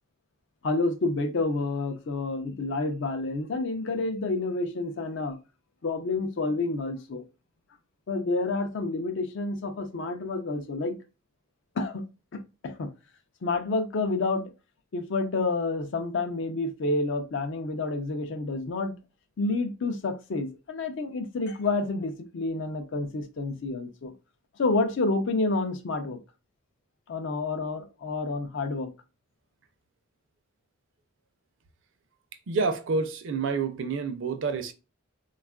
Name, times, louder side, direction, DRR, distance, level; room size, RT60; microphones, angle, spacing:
voice 1, 0.6-5.4 5.8-7.2 8.1-11.0 11.8-12.0 12.3-12.9 13.4-14.5 14.9-18.9 19.4-24.1 24.6-26.2 27.1-28.9, left 3 dB, 60° left, 0.4 m, -29 dB
voice 2, 32.5-34.7, right 4 dB, 60° right, 0.4 m, -28 dB
3.4 x 2.3 x 2.2 m
head